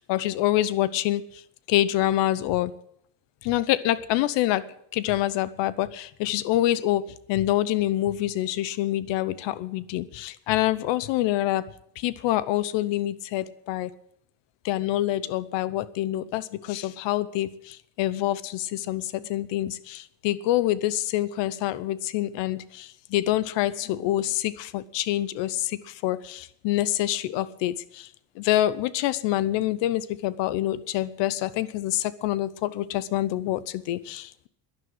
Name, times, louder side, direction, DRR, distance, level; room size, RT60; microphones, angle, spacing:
voice 1, 0.0-1.4 1.7-2.7 3.4-11.7 12.0-13.9 14.6-28.1 28.4-34.5, left 14 dB, 70° left, 17 dB, 0.9 m, -26 dB
11.5 x 11.0 x 7.8 m, 0.72 s
cardioid pair, 175°, 44 cm